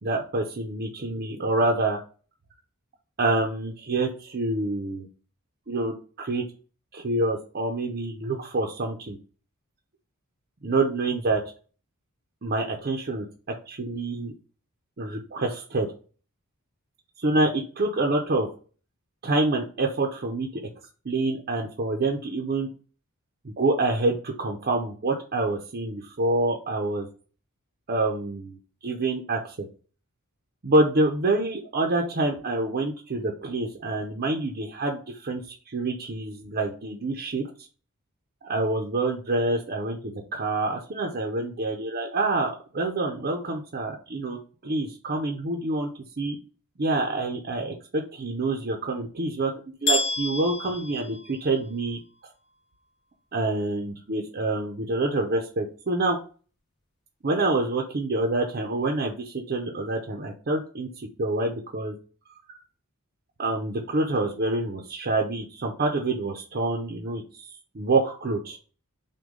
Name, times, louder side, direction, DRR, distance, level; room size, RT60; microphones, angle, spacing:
voice 1, 0.0-2.0 3.2-5.1 5.7-6.4 6.9-9.2 10.6-11.4 12.4-13.3 13.7-14.3 15.0-15.9 17.2-18.5 19.2-20.5 21.0-22.7 23.4-27.1 27.9-28.6 28.8-29.7 30.6-37.4 38.4-45.9 46.2-46.4 46.8-49.5 49.8-52.0 53.3-56.2 57.2-61.9 62.5-62.6 63.4-68.6, right 2 dB, 45° right, 1 dB, 0.6 m, -27 dB
sound 1, 49.9-51.8, left 2 dB, 50° left, 1.8 m, -29 dB
6.1 x 2.3 x 3.7 m, 0.38 s
head